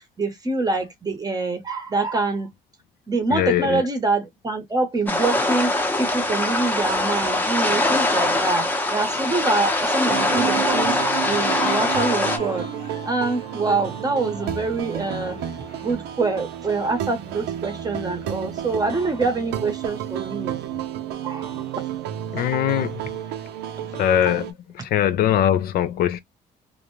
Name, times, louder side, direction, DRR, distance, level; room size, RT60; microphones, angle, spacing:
voice 1, 0.0-2.5 3.1-5.7 6.0-11.0 11.3-12.7 13.1-15.4 15.8-20.6 21.2-21.8 22.8-22.9 23.8-24.0, right 3 dB, 20° right, 0.8 m, -25 dB
voice 2, 3.3-3.8 22.3-23.0 24.0-24.5 24.9-26.2, left 11 dB, 65° left, 0.4 m, -21 dB
sound 1, 5.1-12.4, left 1 dB, 10° left, 0.7 m, -22 dB
Human voice / Cheering, 9.3-15.9, left 5 dB, 40° left, 0.8 m, -38 dB
sound 2, 10.1-24.5, right 10 dB, 90° right, 0.5 m, -31 dB
2.5 x 2.1 x 3.0 m
cardioid pair, 110°, 17 cm